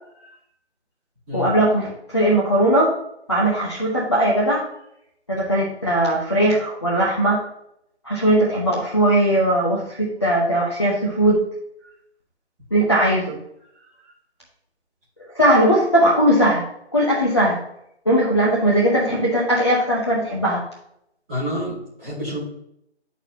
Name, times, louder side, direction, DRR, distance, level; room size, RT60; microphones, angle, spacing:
voice 1, 1.3-2.9 3.3-4.6 5.3-7.4 8.1-11.4 12.7-13.4 15.3-16.6 16.9-17.6 18.1-20.6, right 1 dB, 25° left, -5 dB, 0.7 m, -19 dB
voice 2, 21.3-22.4, equal, 5° right, -12 dB, 1.5 m, -28 dB
9.6 x 4.1 x 2.7 m, 0.76 s
figure-of-eight pair, 165°, 34 cm